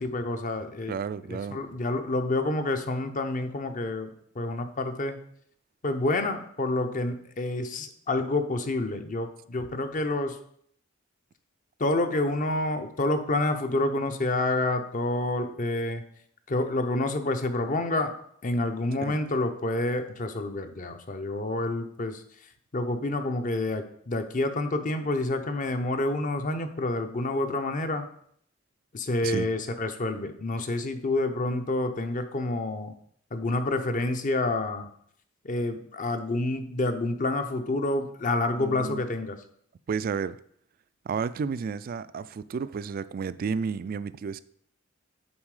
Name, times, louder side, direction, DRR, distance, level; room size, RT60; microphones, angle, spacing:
voice 1, 0.0-0.9 1.3-5.2 5.8-10.4 11.8-16.0 16.5-18.2 18.4-28.1 28.9-32.9 33.3-34.9 35.4-39.4, left 2 dB, 40° left, 8 dB, 0.7 m, -28 dB
voice 2, 0.9-1.6 19.0-19.2 29.2-29.5 38.6-39.0 39.9-40.4 41.0-44.4, right 6 dB, 45° right, 16 dB, 0.3 m, -32 dB
7.2 x 4.5 x 4.8 m, 0.65 s
head